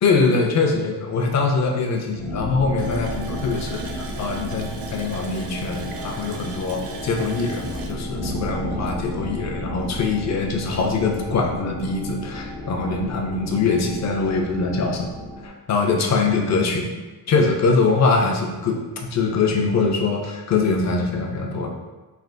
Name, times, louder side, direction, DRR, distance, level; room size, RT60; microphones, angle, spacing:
voice 1, 0.0-15.1 15.4-16.9 17.3-21.7, left 4 dB, 40° left, 1 dB, 0.5 m, -23 dB
sound 1, 2.2-15.5, equal, 70° left, 0.8 m, -33 dB
Water tap faucet, 2.8-9.3 9.6-9.7 10.2-10.3, right 5 dB, 60° right, 0.5 m, -39 dB
3.3 x 2.3 x 2.5 m, 1.2 s
cardioid pair, 115°, 41 cm